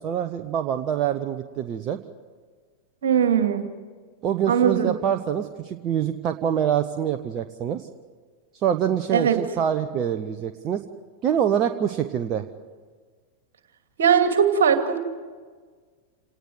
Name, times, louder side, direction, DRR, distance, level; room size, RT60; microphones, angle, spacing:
voice 1, 0.0-2.0 4.2-7.8 8.6-10.8 11.2-12.5, right 9 dB, 35° right, 7 dB, 1.0 m, -25 dB
voice 2, 3.0-3.7 4.5-4.9 9.1-9.4 14.0-15.0, right 7 dB, 60° right, 6 dB, 2.5 m, -20 dB
28.0 x 18.5 x 7.9 m, 1.6 s
figure-of-eight pair, 90°, 0 cm